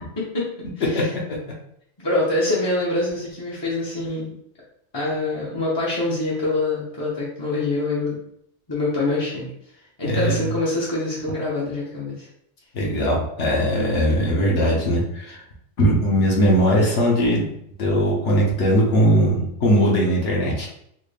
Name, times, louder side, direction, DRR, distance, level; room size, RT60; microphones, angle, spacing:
voice 1, 0.3-1.1 2.0-4.3 4.9-8.2 8.7-9.5 10.0-12.3, left 2 dB, 30° left, -6 dB, 0.5 m, -25 dB
voice 2, 10.0-10.4 12.7-15.4 15.8-17.5 17.8-20.7, equal, 65° left, -2 dB, 1.2 m, -19 dB
4.1 x 2.1 x 3.3 m, 0.73 s
omnidirectional pair, 1.4 m